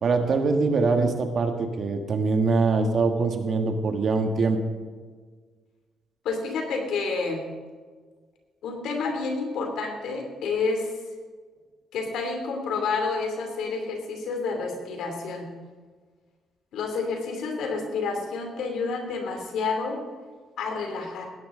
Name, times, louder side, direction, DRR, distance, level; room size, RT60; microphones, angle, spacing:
voice 1, 0.0-4.6, right 4 dB, 55° right, 5 dB, 1.6 m, -23 dB
voice 2, 6.2-7.4 8.6-10.9 11.9-15.5 16.7-20.0 20.6-21.3, left 4 dB, 80° left, 3 dB, 2.8 m, -29 dB
17.5 x 10.5 x 3.8 m, 1.5 s
cardioid pair, 90°, 0 cm